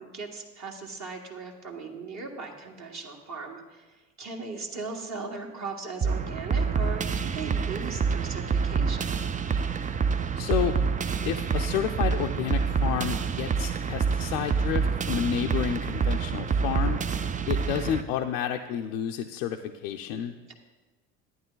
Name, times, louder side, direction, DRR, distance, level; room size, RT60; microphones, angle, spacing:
voice 1, 0.0-3.9 4.2-9.2 20.5-20.6, right 4 dB, 45° right, 0 dB, 1.7 m, -38 dB
sound 1, 6.0-18.0, right 5 dB, 20° right, 0.4 m, -27 dB
voice 2, 10.3-10.7 11.2-17.0 17.5-20.3, left 9 dB, 75° left, 3 dB, 0.6 m, -30 dB
11.0 x 9.1 x 3.9 m, 1.2 s
hypercardioid pair, 65°, 39 cm